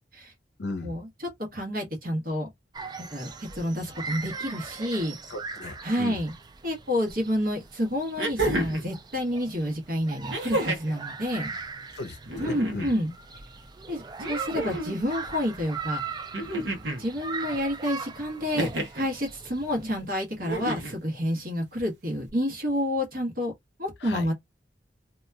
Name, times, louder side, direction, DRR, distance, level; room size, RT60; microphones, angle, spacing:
voice 1, 0.6-1.0 5.3-6.2 11.9-12.9 24.0-24.3, left 2 dB, 65° left, 0.6 m, -36 dB
voice 2, 1.5-2.5 3.1-5.2 5.8-6.3 6.6-11.5 12.4-13.1 13.9-16.0 17.0-18.7 18.9-23.5 23.8-24.3, equal, 55° right, 1.1 m, -29 dB
sound 1, 2.7-20.0, right 4 dB, 25° right, 0.3 m, -40 dB
sound 2, 7.1-7.2 8.2-8.9 10.3-11.0 12.2-13.0 14.2-15.0 16.3-17.0 18.5-19.1 20.4-21.0 22.3-22.4, right 1 dB, 75° right, 0.8 m, -30 dB
2.8 x 2.3 x 2.3 m
head